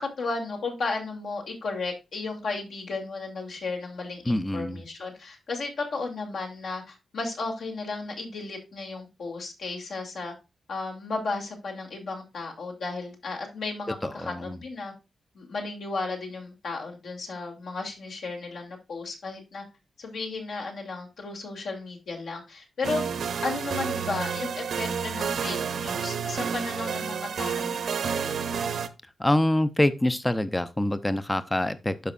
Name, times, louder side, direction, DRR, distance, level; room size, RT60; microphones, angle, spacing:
voice 1, 0.0-10.3 10.7-14.9 15.3-19.6 20.0-23.0 23.4-28.4, left 3 dB, 70° left, 2.6 m, -34 dB
voice 2, 4.3-4.8 14.0-14.6 29.2-32.1, left 1 dB, 10° left, 0.4 m, -25 dB
sound 1, 22.8-28.9, right 6 dB, 65° right, 0.7 m, -30 dB
12.0 x 5.1 x 2.4 m
wide cardioid pair, 160°, 0 cm